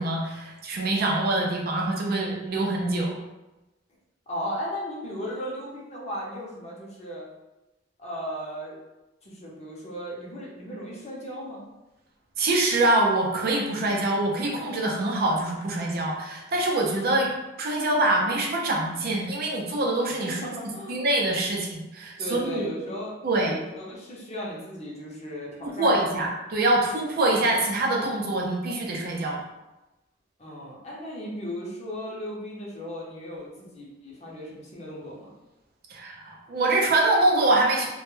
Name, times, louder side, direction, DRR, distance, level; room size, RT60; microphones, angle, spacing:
voice 1, 0.0-3.2 12.4-17.3 17.6-20.4 20.9-22.7 23.2-23.5 25.6-29.4 35.9-37.9, right 2 dB, 55° right, -1 dB, 0.5 m, -24 dB
voice 2, 4.3-7.3 8.0-8.8 9.2-11.7 20.3-21.0 22.2-26.0 30.4-35.3, equal, 35° left, -4 dB, 0.6 m, -36 dB
2.1 x 2.1 x 3.1 m, 1.0 s
head